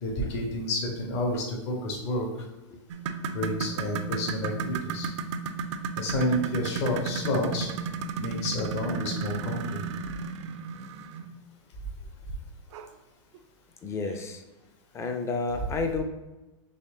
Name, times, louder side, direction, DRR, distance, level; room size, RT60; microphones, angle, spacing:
voice 1, 0.0-2.3 3.3-5.1 6.0-7.7 8.2-9.8, left 1 dB, 60° left, 1 dB, 1.3 m, -29 dB
sound 1, 2.9-11.3 12.7-12.9 13.3-13.4 14.1-14.2, right 5 dB, 65° right, 0.5 m, -34 dB
voice 2, 13.8-14.4 14.9-16.0, left 4 dB, 15° left, 6 dB, 0.4 m, -30 dB
4.2 x 3.1 x 3.7 m, 1.1 s
hypercardioid pair, 135°, 16 cm